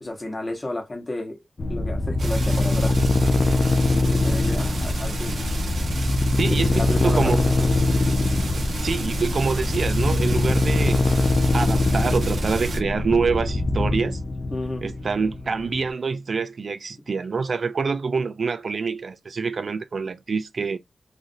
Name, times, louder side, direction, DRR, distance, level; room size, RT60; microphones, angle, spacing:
voice 1, 0.0-3.0 3.9-5.4 6.6-7.3 7.6-7.7 14.5-14.9, left 2 dB, 25° left, 1.0 m, -32 dB
sound 1, 1.6-15.9, left 2 dB, 40° left, 0.4 m, -23 dB
sound 2, 2.2-12.8, right 2 dB, 85° right, 1.1 m, -32 dB
voice 2, 6.4-7.5 8.8-11.1 11.5-14.2 14.8-20.8, right 5 dB, 60° right, 0.3 m, -26 dB
3.2 x 2.5 x 2.6 m
wide cardioid pair, 130°, 0 cm